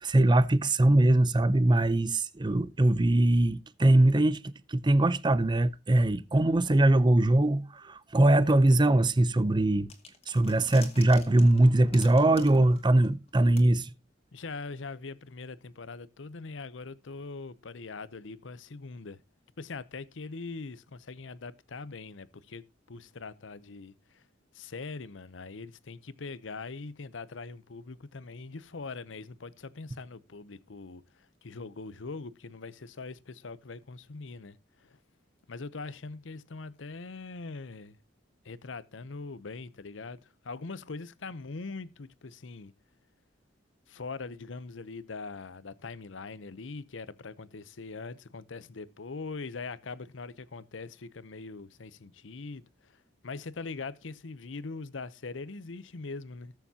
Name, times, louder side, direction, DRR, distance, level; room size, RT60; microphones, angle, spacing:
voice 1, 0.0-9.9 10.3-13.9, right 1 dB, 25° right, 0.6 m, -22 dB
sound 1, 9.9-13.3 13.6-13.7, left 5 dB, 35° left, 2.2 m, -48 dB
voice 2, 14.3-19.2 19.6-24.2 24.5-35.0 35.5-38.0 38.4-42.7 43.9-56.5, left 4 dB, 80° left, 0.7 m, -42 dB
19.5 x 7.0 x 2.8 m
head